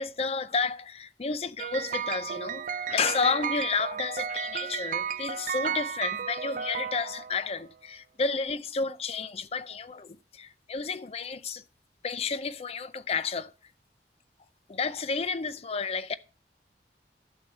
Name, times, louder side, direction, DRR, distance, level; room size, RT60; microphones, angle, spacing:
voice 1, 0.0-11.6 12.0-13.5 14.7-16.1, left 4 dB, 35° left, 0.5 m, -31 dB
sound 1, 1.6-7.6, right 7 dB, 45° right, 0.4 m, -33 dB
12.0 x 6.2 x 4.4 m
head